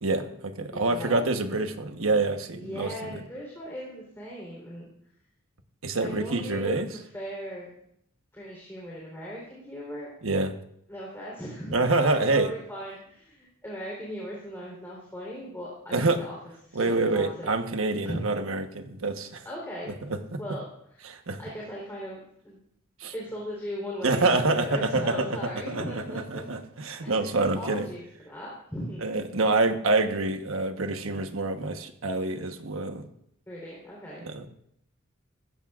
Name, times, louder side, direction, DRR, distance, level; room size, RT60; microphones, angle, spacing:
voice 1, 0.0-3.2 5.8-6.9 10.2-10.5 11.7-12.5 15.9-16.3 16.7-19.4 20.1-20.4 21.0-21.4 23.0-23.1 24.0-27.9 29.0-33.1 34.2-34.5, right 3 dB, 90° right, 7 dB, 1.2 m, -27 dB
voice 2, 0.7-1.2 2.5-4.9 6.0-7.7 8.3-10.1 10.9-16.4 16.6-17.5 18.0-18.2 19.4-19.9 20.4-22.6 23.1-26.5 27.0-29.0 33.5-34.3, equal, 10° left, -4 dB, 3.8 m, -38 dB
19.0 x 15.0 x 2.5 m, 0.73 s
head